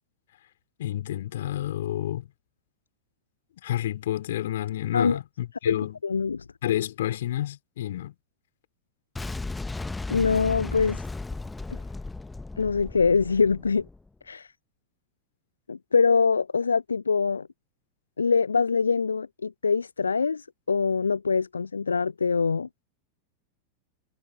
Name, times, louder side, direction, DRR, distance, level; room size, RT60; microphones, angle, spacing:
voice 1, 0.8-2.3 3.6-6.0 6.6-8.1, left 12 dB, 60° left, 3.1 m, -29 dB
voice 2, 6.0-6.4 10.1-11.0 12.6-13.8 14.3-14.5 15.7-17.5 18.2-22.7, left 5 dB, 75° left, 0.8 m, -24 dB
Boom, 9.2-14.1, left 3 dB, 10° left, 1.3 m, -35 dB
figure-of-eight pair, 90°, 0 cm